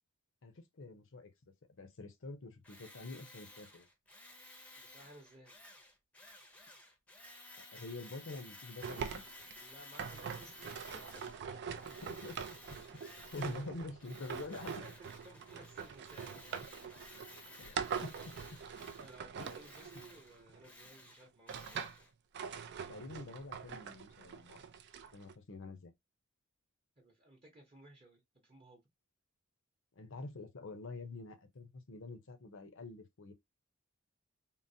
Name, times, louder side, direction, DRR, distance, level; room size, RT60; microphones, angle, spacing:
voice 1, 0.4-1.3 1.7-3.9 7.7-9.2 12.0-12.4 13.0-14.8 17.6-18.4 19.4-19.6 22.9-24.6 25.1-25.9 30.0-33.3, left 2 dB, 60° left, 0.7 m, -47 dB
Tools, 2.6-11.4 11.8-13.7 14.0-22.1, left 1 dB, 5° left, 0.6 m, -55 dB
voice 2, 4.8-5.6 9.6-10.6 11.1-11.2 11.7-11.8 12.9-13.8 14.8-14.9 15.2-16.6 19.0-21.8 27.0-28.8, right 1 dB, 25° right, 0.8 m, -58 dB
sound 1, 8.8-20.7 21.2-22.0 22.3-25.3, right 6 dB, 50° right, 0.4 m, -44 dB
3.8 x 2.0 x 2.6 m
head